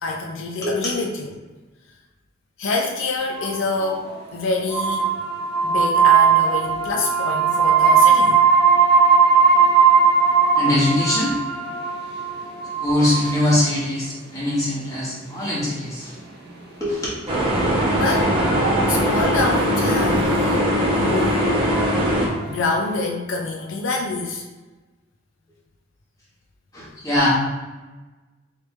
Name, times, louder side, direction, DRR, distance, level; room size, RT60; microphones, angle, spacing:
voice 1, 0.0-1.4 2.6-5.1 5.6-8.4 17.9-18.4 18.9-21.5 22.5-24.4, left 3 dB, 80° left, 1 dB, 0.5 m, -26 dB
voice 2, 0.6-1.0 10.5-11.4 12.8-16.2 16.8-17.1 26.7-27.3, left 1 dB, 15° left, -8 dB, 1.3 m, -22 dB
sound 1, 3.2-4.1 4.7-13.5 15.5-15.6 17.9-19.3 19.8-19.9 20.1-20.5 21.2-22.8, right 6 dB, 55° right, 0.8 m, -19 dB
sound 2, 17.3-22.3, equal, 30° right, 0.9 m, -20 dB
3.2 x 3.2 x 3.1 m, 1.2 s
head